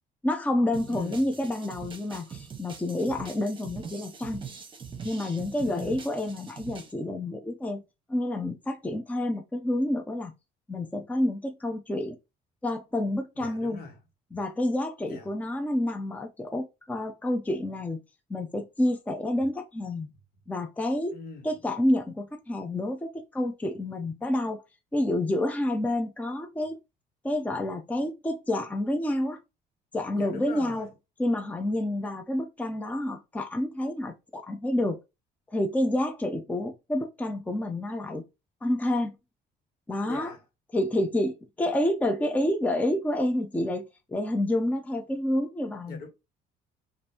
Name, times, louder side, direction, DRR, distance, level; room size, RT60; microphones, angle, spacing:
voice 1, 0.2-4.4 5.0-7.8 8.1-10.3 10.7-12.1 12.6-13.8 14.3-18.0 18.3-20.1 20.5-21.1 21.4-24.6 24.9-26.8 27.2-29.4 29.9-30.9 31.2-35.0 35.5-38.2 38.6-39.1 39.9-40.3 40.7-43.8 44.1-46.0, left 1 dB, 10° left, 0.5 m, -28 dB
sound 1, 0.7-6.9, right 6 dB, 30° right, 1.0 m, -43 dB
voice 2, 0.9-1.2 5.6-6.0 13.4-14.0 15.1-15.3 21.1-21.5 30.1-30.9 40.0-40.4 45.9-46.1, left 4 dB, 65° left, 1.5 m, -41 dB
5.1 x 2.6 x 2.8 m
cardioid pair, 110°, 17 cm